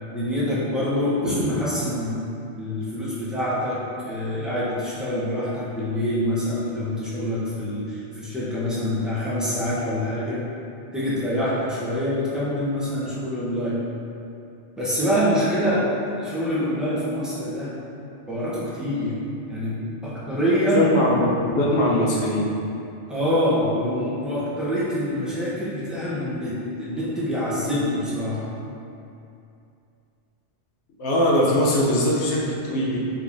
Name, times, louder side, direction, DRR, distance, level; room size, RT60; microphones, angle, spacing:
voice 1, 0.1-2.2 2.6-10.4 10.9-13.8 14.8-15.8 16.2-17.7 18.3-19.2 19.5-20.9 23.1-28.5, equal, ahead, -10 dB, 0.4 m, -25 dB
voice 2, 20.7-22.5 31.0-33.0, left 1 dB, 75° left, -4 dB, 0.9 m, -21 dB
3.5 x 2.9 x 2.5 m, 2.7 s
omnidirectional pair, 1.2 m